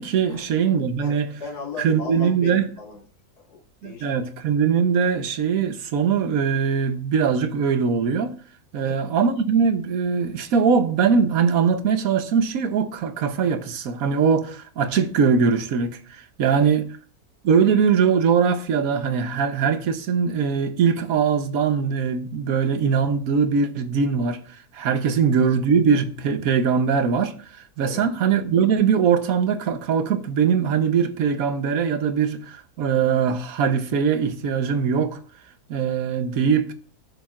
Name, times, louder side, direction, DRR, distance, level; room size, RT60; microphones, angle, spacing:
voice 1, 0.0-1.3 1.8-2.7 3.8-8.3 8.7-16.9 17.4-35.2 35.7-36.7, right 6 dB, 70° right, 1.3 m, -21 dB
voice 2, 0.8-3.0 3.5-4.1 8.8-9.0 16.6-16.8 25.0-25.2 27.8-28.0, left 4 dB, 90° left, 2.5 m, -37 dB
17.0 x 7.3 x 2.5 m
omnidirectional pair, 1.6 m